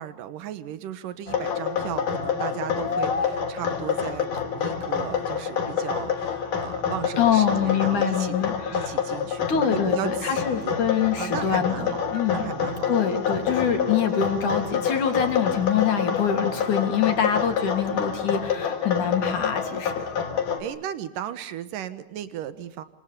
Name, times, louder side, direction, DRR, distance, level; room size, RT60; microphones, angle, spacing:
voice 1, 0.0-8.4 8.7-10.7 11.2-12.9 20.6-22.8, right 10 dB, 90° right, 13 dB, 3.0 m, -35 dB
sound 1, 1.3-20.6, left 7 dB, 85° left, 4.9 m, -27 dB
voice 2, 7.2-9.0 9.5-12.4 12.9-20.0, left 8 dB, 70° left, 6 dB, 4.7 m, -25 dB
28.5 x 27.0 x 6.9 m, 0.79 s
omnidirectional pair, 3.7 m